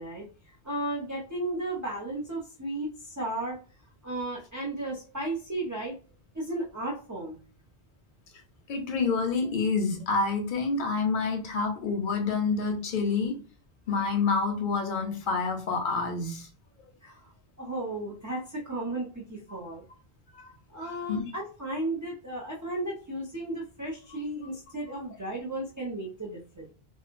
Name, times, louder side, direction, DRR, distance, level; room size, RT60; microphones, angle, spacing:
voice 1, 0.0-3.6 4.0-5.9 6.3-7.4 17.0-17.3 17.6-19.8 20.7-26.7, right 1 dB, 25° right, 0.5 m, -34 dB
voice 2, 8.7-13.4 13.9-16.5 19.5-19.6 20.3-20.5 21.1-21.3, left 4 dB, 55° left, 0.7 m, -28 dB
2.9 x 2.2 x 2.5 m
omnidirectional pair, 1.1 m